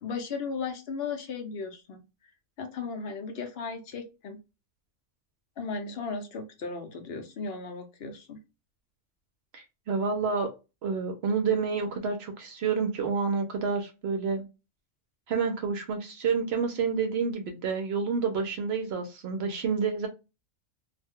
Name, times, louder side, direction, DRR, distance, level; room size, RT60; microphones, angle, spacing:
voice 1, 0.0-2.0 2.6-4.4 5.6-8.4, left 4 dB, 65° left, 5 dB, 0.8 m, -36 dB
voice 2, 9.5-10.5 10.8-14.4 15.3-20.1, right 5 dB, 65° right, 4 dB, 0.8 m, -29 dB
2.5 x 2.1 x 3.4 m, 0.27 s
omnidirectional pair, 1.3 m